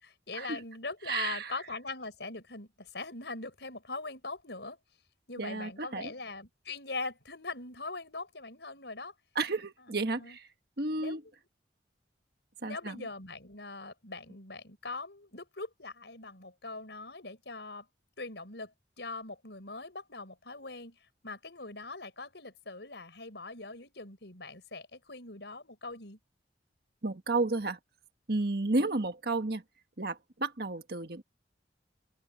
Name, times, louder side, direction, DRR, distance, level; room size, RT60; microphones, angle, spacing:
voice 1, 0.0-4.8 5.3-9.1 9.9-10.4 11.0-11.2 12.6-17.9 18.2-18.7 19.0-21.0 21.2-26.2, left 3 dB, 75° left, 5.8 m, -41 dB
voice 2, 1.1-1.5 5.4-6.1 9.3-10.5 10.8-11.2 12.6-13.1 27.0-27.8 28.3-29.6 30.0-31.2, right 3 dB, 60° right, 1.5 m, -32 dB
open air
head